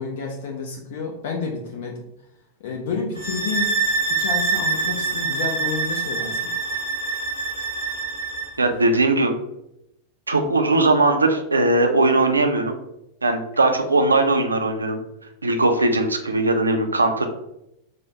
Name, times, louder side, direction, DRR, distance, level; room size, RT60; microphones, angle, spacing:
voice 1, 0.0-2.0 2.6-3.7 4.1-6.5, left 5 dB, 55° left, 1 dB, 0.5 m, -30 dB
sound 1, 3.1-8.5, right 4 dB, 75° left, 1.2 m, -25 dB
voice 2, 8.6-9.4 10.3-12.7 13.2-15.0 15.4-17.3, right 2 dB, 80° right, 5 dB, 0.4 m, -19 dB
4.9 x 2.0 x 2.7 m, 0.83 s
figure-of-eight pair, 90°, 0 cm